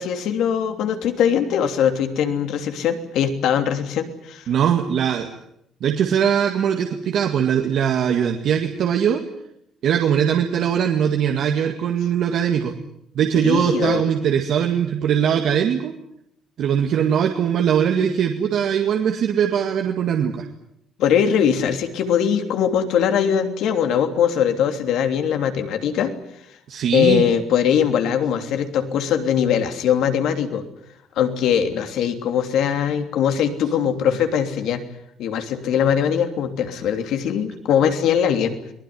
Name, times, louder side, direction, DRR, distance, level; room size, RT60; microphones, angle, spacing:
voice 1, 0.0-4.5 13.4-14.0 21.0-26.1 26.9-30.6 31.1-34.8 35.2-38.5, left 8 dB, 65° left, 7 dB, 3.1 m, -21 dB
voice 2, 4.5-5.3 5.8-9.2 9.8-12.7 13.1-15.9 16.6-20.5 26.7-27.2, right 8 dB, 50° right, 4 dB, 2.0 m, -21 dB
23.0 x 20.0 x 9.7 m, 0.78 s
cardioid pair, 170°, 0 cm